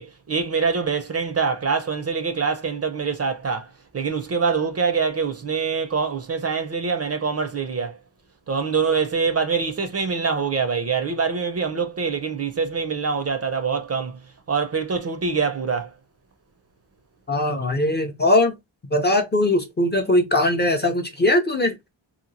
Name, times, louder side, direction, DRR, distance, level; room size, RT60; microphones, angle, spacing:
voice 1, 0.0-8.0 8.5-14.2 14.5-15.9, right 5 dB, 35° right, 0.4 m, -24 dB
voice 2, 17.3-18.5 18.9-21.8, left 1 dB, 25° left, 0.4 m, -20 dB
2.8 x 2.3 x 2.6 m
wide cardioid pair, 115°, 45 cm